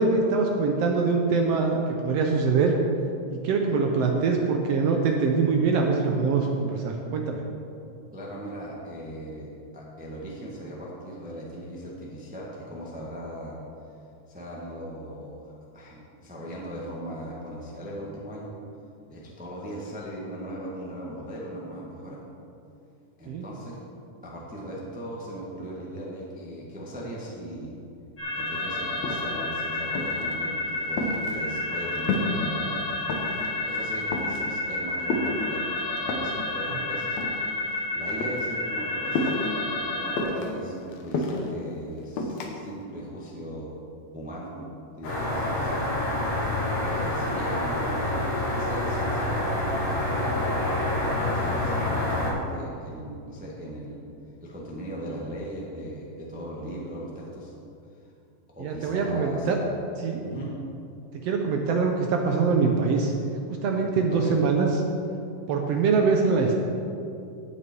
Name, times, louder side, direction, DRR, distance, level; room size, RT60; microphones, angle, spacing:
voice 1, 0.0-2.7 3.3-7.4 23.3-23.4 58.6-59.6 60.0-60.2 61.2-63.1 63.5-64.7 65.5-66.6, right 4 dB, 75° right, 2 dB, 1.4 m, -23 dB
voice 2, 8.1-13.6 14.3-18.5 19.1-22.2 23.2-23.8 24.2-27.7 28.3-32.9 33.6-35.6 36.2-37.2 37.9-39.3 39.8-43.7 44.1-44.7 44.9-45.8 46.8-50.5 51.2-54.0 54.4-57.5 58.5-59.5 60.2-60.6 64.1-64.4, equal, 5° right, -4 dB, 0.6 m, -38 dB
sound 1, 28.2-40.2, left 2 dB, 30° left, 2.8 m, -30 dB
sound 2, 28.5-28.6 28.9-29.5 30.0-30.4 30.7-32.5 32.8-33.5 33.9-34.5 35.1-36.4 37.0-37.8 38.1-38.4 39.1-39.6 40.2-41.5 42.2-42.5, left 2 dB, 65° left, 2.1 m, -30 dB
sound 3, 45.0-52.3, left 1 dB, 85° left, 4.0 m, -27 dB
17.0 x 6.2 x 4.6 m, 2.6 s
omnidirectional pair, 3.7 m